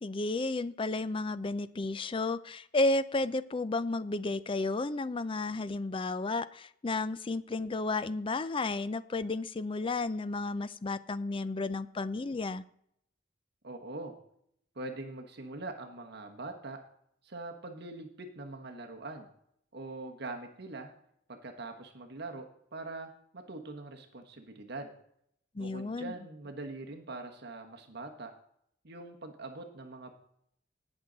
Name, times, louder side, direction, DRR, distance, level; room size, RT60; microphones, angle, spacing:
voice 1, 0.0-12.6 25.5-26.1, left 2 dB, 25° left, 16 dB, 0.4 m, -32 dB
voice 2, 13.6-14.1 14.7-16.8 17.2-19.3 19.7-20.9 21.3-22.4 22.7-24.9 25.6-28.3 28.8-30.1, right 2 dB, 55° right, 3 dB, 1.3 m, -43 dB
18.5 x 6.3 x 4.0 m, 0.69 s
head